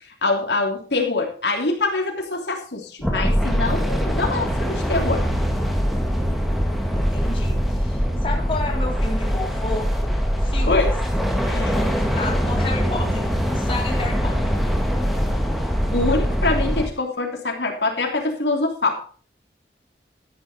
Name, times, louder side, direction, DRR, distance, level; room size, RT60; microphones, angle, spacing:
voice 1, 0.2-5.3 10.6-10.9 11.4-11.7 15.9-19.0, left 3 dB, 80° left, 1 dB, 3.2 m, -24 dB
sound 1, 3.0-16.9, equal, ahead, 1.9 m, -22 dB
voice 2, 6.9-10.9 11.5-14.5, left 2 dB, 30° left, -1 dB, 3.6 m, -32 dB
12.5 x 11.0 x 4.4 m, 0.39 s
head